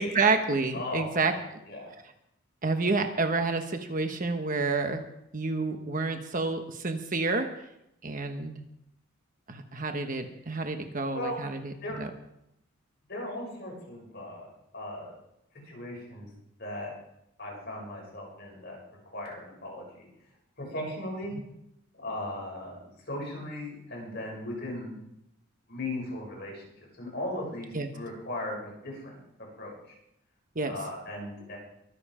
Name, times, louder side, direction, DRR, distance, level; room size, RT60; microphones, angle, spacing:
voice 1, 0.0-1.6 2.6-5.0 5.3-7.5 8.0-8.6 9.5-12.1 27.7-27.9 30.5-30.7, right 3 dB, 40° right, 6 dB, 1.2 m, -29 dB
voice 2, 0.7-1.4 1.7-1.9 11.1-11.4 11.8-12.0 13.1-15.1 15.6-16.3 16.6-16.9 17.4-18.8 19.1-20.1 20.6-21.4 21.9-22.7 23.1-24.9 25.7-26.6 27.0-29.1 29.6-29.9 30.6-31.6, left 1 dB, 45° left, -1 dB, 6.7 m, -37 dB
23.5 x 8.0 x 5.0 m, 0.80 s
head